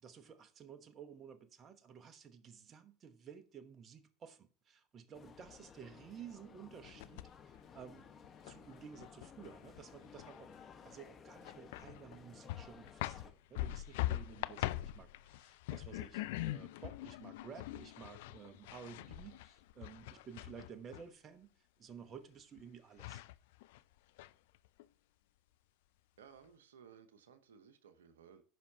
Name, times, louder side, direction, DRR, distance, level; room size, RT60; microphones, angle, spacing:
voice 1, 0.0-10.5 10.8-21.5 21.8-23.2, right 7 dB, 35° right, 1.0 m, -54 dB
sound 1, 5.1-13.3, left 6 dB, 35° left, 1.3 m, -57 dB
sound 2, 6.8-7.6 8.0-10.6 10.8-10.9 11.4-12.2 12.5-21.0 22.6-22.7 23.0-23.8 24.2-24.8, left 16 dB, 70° left, 0.4 m, -43 dB
voice 2, 26.2-28.4, right 7 dB, 80° right, 0.9 m, -59 dB
15.0 x 5.5 x 2.8 m
hypercardioid pair, 80°, 0 cm